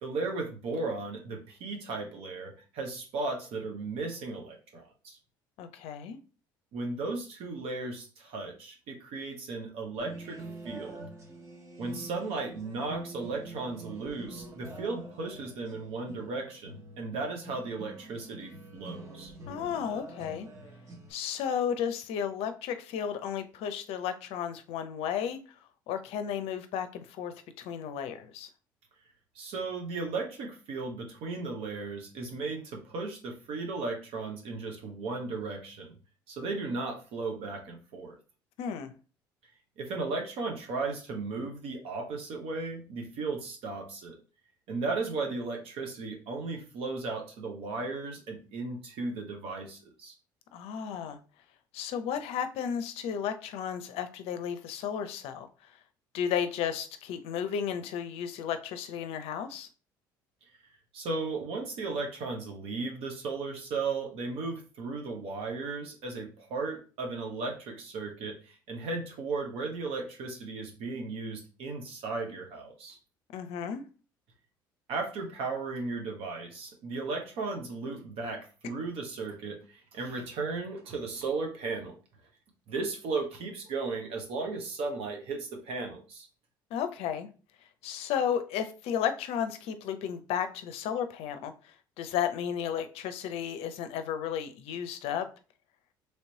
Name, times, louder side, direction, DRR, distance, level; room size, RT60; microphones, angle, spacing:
voice 1, 0.0-5.2 6.7-11.0 11.8-19.3 29.3-35.9 36.3-38.2 39.8-44.2 44.7-50.1 60.9-73.0 74.9-81.9 82.7-86.3, right 3 dB, 60° right, 2 dB, 0.8 m, -35 dB
voice 2, 5.6-6.2 19.5-20.5 21.1-25.6 25.9-28.5 38.6-38.9 50.5-51.2 51.7-55.7 56.1-59.7 73.3-73.8 86.7-87.3 87.8-95.3, left 8 dB, 65° left, 10 dB, 0.5 m, -33 dB
sound 1, 10.0-21.1, right 2 dB, 30° right, 1.0 m, -46 dB
3.1 x 3.0 x 2.8 m, 0.35 s
hypercardioid pair, 65°, 11 cm